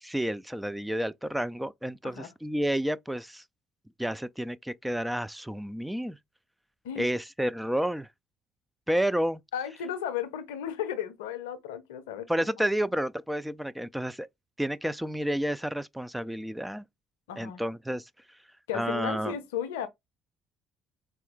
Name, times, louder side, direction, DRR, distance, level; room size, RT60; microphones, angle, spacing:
voice 1, 0.0-3.4 4.0-6.2 7.0-8.1 8.9-9.4 12.3-14.3 14.6-16.8 17.4-18.1 18.7-19.3, equal, 5° right, 0.3 m, -30 dB
voice 2, 9.5-12.5 17.3-17.6 18.7-19.9, left 9 dB, 75° left, 0.6 m, -34 dB
4.3 x 2.2 x 3.6 m
figure-of-eight pair, 50°, 0 cm